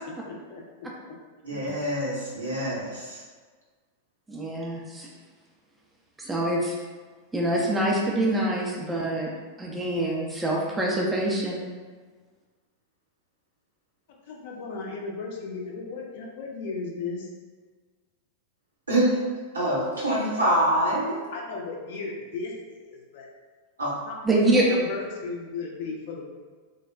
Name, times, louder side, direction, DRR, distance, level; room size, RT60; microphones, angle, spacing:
voice 1, 0.3-0.6 1.5-1.7 14.3-17.3 21.3-23.3 24.0-26.3, left 4 dB, 50° left, -1 dB, 0.4 m, -36 dB
voice 2, 1.4-3.2 18.9-19.2 19.5-21.2 23.8-23.9, right 1 dB, 75° right, -7 dB, 0.9 m, -25 dB
voice 3, 4.3-5.1 6.2-6.8 7.3-9.3 9.6-11.6 24.2-24.6, right 1 dB, 10° right, -3 dB, 0.5 m, -25 dB
3.2 x 2.1 x 2.3 m, 1.5 s
figure-of-eight pair, 90°, 0 cm